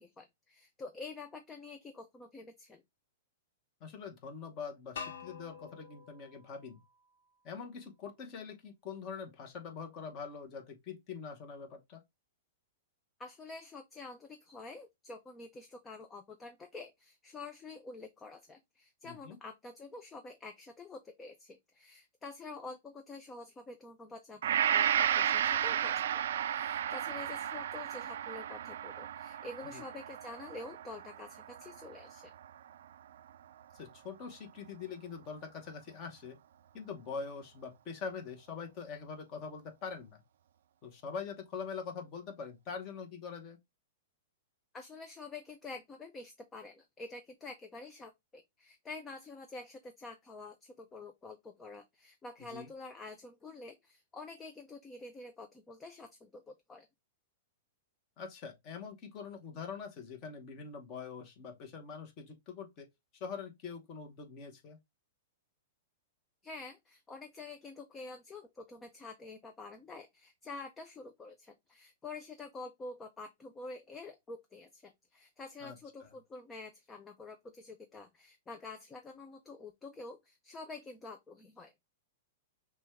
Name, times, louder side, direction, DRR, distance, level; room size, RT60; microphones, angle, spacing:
voice 1, 0.0-2.8 13.2-32.3 44.7-56.9 66.4-81.7, left 3 dB, 10° left, 0.4 m, -48 dB
voice 2, 3.8-6.8 7.4-12.0 19.0-19.4 29.6-29.8 33.7-36.4 36.7-40.2 40.8-43.6 52.5-52.7 58.2-62.9 63.1-64.8 75.6-75.8 76.0-76.1, left 5 dB, 25° left, 1.0 m, -44 dB
sound 1, 5.0-7.9, left 6 dB, 70° left, 1.1 m, -48 dB
Gong, 24.4-32.7 33.2-33.3, right 10 dB, 65° right, 0.3 m, -33 dB
6.0 x 2.3 x 3.5 m
supercardioid pair, 175°, 0 cm